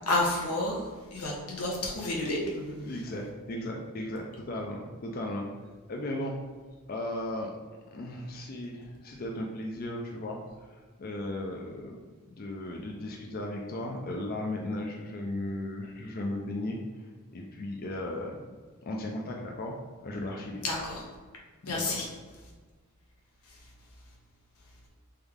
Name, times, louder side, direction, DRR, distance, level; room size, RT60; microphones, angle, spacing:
voice 1, 0.1-2.5 20.6-21.0 21.6-22.1 23.4-23.6, left 2 dB, 85° left, -2 dB, 1.1 m, -30 dB
voice 2, 2.5-5.5 5.9-6.3 6.9-7.5 7.9-12.0 12.3-16.8 17.3-18.4 18.9-19.7 20.0-20.6 21.6-22.0, left 1 dB, 40° left, 0 dB, 0.4 m, -36 dB
3.6 x 3.5 x 3.5 m, 1.4 s
head